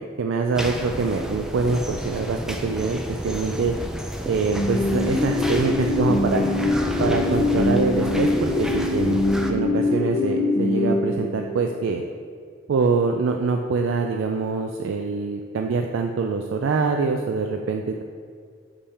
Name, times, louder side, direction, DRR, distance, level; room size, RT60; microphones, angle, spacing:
voice 1, 0.0-3.7 4.3-6.5 7.0-9.2 9.5-12.0 12.7-18.0, right 4 dB, 85° right, 4 dB, 0.3 m, -24 dB
sound 1, 0.5-9.5, equal, 5° right, 0.4 m, -31 dB
sound 2, 4.6-11.7, left 2 dB, 55° left, 0.8 m, -23 dB
6.9 x 3.5 x 4.2 m, 2.1 s
head